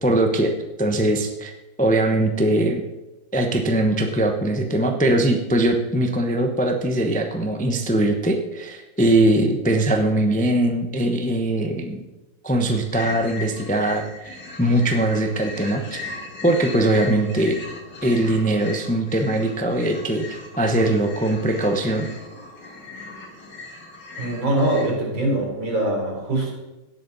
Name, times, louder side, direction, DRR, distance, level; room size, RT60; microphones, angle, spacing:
voice 1, 0.0-0.5 0.8-1.5 1.8-2.8 3.3-12.0 12.4-16.0 16.4-17.6 18.0-22.1, right 1 dB, 10° left, 4 dB, 0.3 m, -21 dB
sound 1, 12.9-24.9, left 3 dB, 60° left, 2.7 m, -38 dB
voice 2, 24.2-26.5, right 1 dB, 75° right, -2 dB, 4.7 m, -23 dB
17.5 x 7.6 x 4.1 m, 1.1 s
omnidirectional pair, 2.1 m